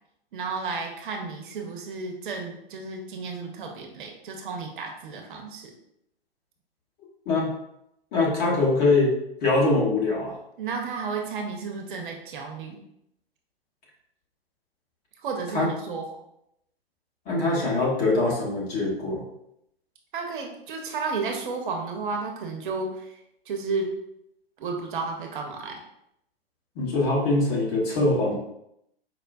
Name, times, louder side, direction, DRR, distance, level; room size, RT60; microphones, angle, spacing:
voice 1, 0.3-5.7 10.6-12.8 15.2-16.0 20.1-23.1 23.5-24.0 24.6-25.7, right 4 dB, 55° right, 2 dB, 0.7 m, -32 dB
voice 2, 8.1-9.1 9.4-10.3 15.5-15.7 17.3-19.2 26.8-28.4, left 2 dB, 40° left, -4 dB, 1.3 m, -23 dB
4.7 x 2.2 x 2.5 m, 0.78 s
figure-of-eight pair, 110°, 30 cm